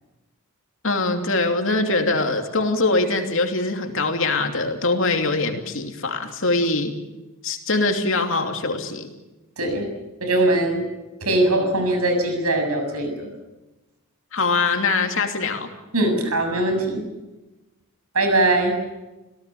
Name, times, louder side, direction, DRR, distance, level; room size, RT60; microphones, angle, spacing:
voice 1, 0.8-6.9 7.4-9.1 14.3-15.7, left 3 dB, 60° left, 5 dB, 2.9 m, -22 dB
voice 2, 9.6-9.9 10.2-10.9 11.2-13.3 15.9-17.0 18.1-18.7, right 2 dB, 85° right, 6 dB, 7.3 m, -21 dB
27.0 x 17.5 x 8.6 m, 1.0 s
head